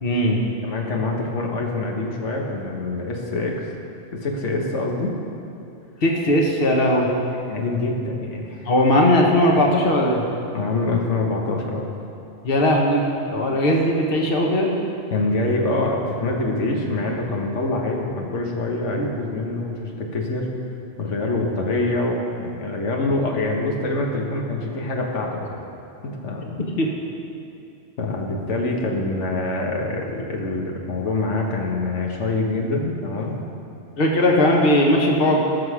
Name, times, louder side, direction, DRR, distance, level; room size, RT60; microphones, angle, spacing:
voice 1, 0.0-0.4 6.0-7.1 8.6-10.2 12.4-14.7 18.9-19.1 26.8-26.9 34.0-35.4, left 1 dB, 55° left, 0 dB, 1.4 m, -18 dB
voice 2, 0.6-3.7 4.1-5.2 7.5-8.7 10.5-11.9 15.1-20.5 21.0-25.6 26.0-26.6 28.0-33.4, left 2 dB, 85° left, 0 dB, 1.5 m, -25 dB
18.0 x 6.3 x 4.9 m, 2.7 s
omnidirectional pair, 1.2 m